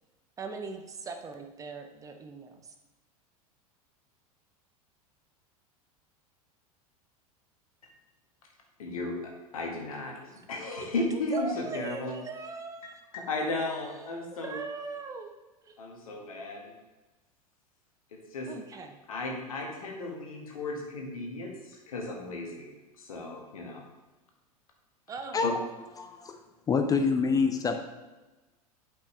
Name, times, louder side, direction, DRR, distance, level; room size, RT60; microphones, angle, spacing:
voice 1, 0.4-2.7 11.1-12.9 13.9-14.0 14.3-15.3 15.6-15.8 18.5-19.0 25.1-25.4, right 4 dB, 15° right, 5 dB, 0.7 m, -39 dB
voice 2, 8.8-12.1 13.1-14.5 15.8-16.7 18.1-18.5 19.1-22.7 23.0-23.8 25.4-25.6, left 2 dB, 65° left, 1 dB, 1.6 m, -35 dB
voice 3, 26.0-26.4 26.7-27.8, left 5 dB, 20° left, 6 dB, 0.5 m, -26 dB
8.2 x 5.3 x 3.3 m, 1.1 s
figure-of-eight pair, 85°, 19 cm